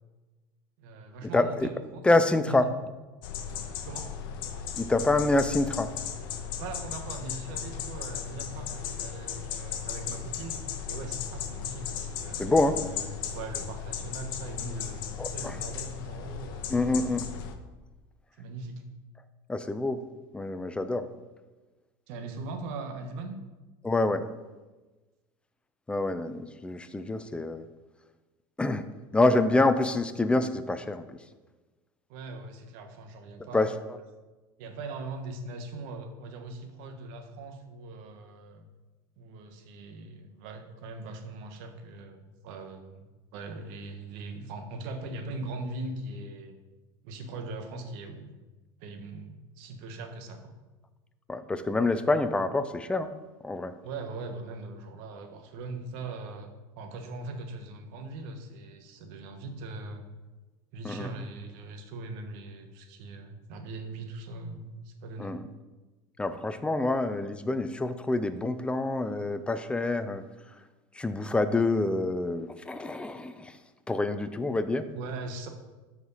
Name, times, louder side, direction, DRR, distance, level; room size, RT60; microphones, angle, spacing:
voice 1, 0.8-2.0 2.5-2.7 3.8-4.1 6.6-10.6 10.9-15.0 15.3-17.1 18.4-18.8 22.1-23.4 32.1-33.7 34.6-38.7 39.2-43.1 43.3-46.5 47.0-48.4 48.8-50.5 53.8-60.0 60.7-65.4 74.9-75.5, right 3 dB, 70° right, 5 dB, 1.4 m, -40 dB
voice 2, 1.3-1.7 2.0-2.6 4.8-5.9 12.4-12.8 15.2-15.5 16.7-17.2 19.5-20.0 20.3-21.1 23.8-24.3 25.9-27.6 28.6-28.9 29.1-31.0 33.5-33.7 51.3-53.1 53.4-53.7 60.8-61.1 65.2-65.5 66.2-70.2 71.0-73.5 73.9-74.9, left 2 dB, 10° left, 10 dB, 0.6 m, -26 dB
sound 1, 3.2-17.5, left 8 dB, 80° left, 0.9 m, -36 dB
13.0 x 4.8 x 4.1 m, 1.2 s
supercardioid pair, 120°, 11 cm